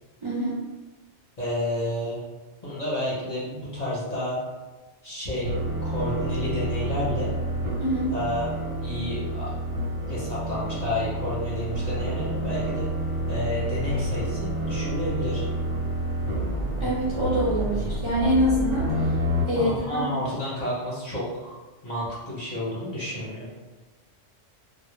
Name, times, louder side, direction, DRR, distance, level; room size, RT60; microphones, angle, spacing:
voice 1, 0.2-0.6 7.8-8.1 16.8-19.1 19.5-20.0, equal, 50° right, -9 dB, 0.3 m, -25 dB
voice 2, 1.4-2.2 2.6-4.4 5.0-5.5 5.8-7.3 8.1-8.5 8.8-9.5 10.1-12.8 13.3-15.4 19.6-21.5 21.8-23.5, left 1 dB, 40° left, -8 dB, 0.6 m, -30 dB
sound 1, 5.4-19.5, right 1 dB, 90° right, 1.0 m, -29 dB
2.1 x 2.0 x 3.0 m, 1.2 s
omnidirectional pair, 1.3 m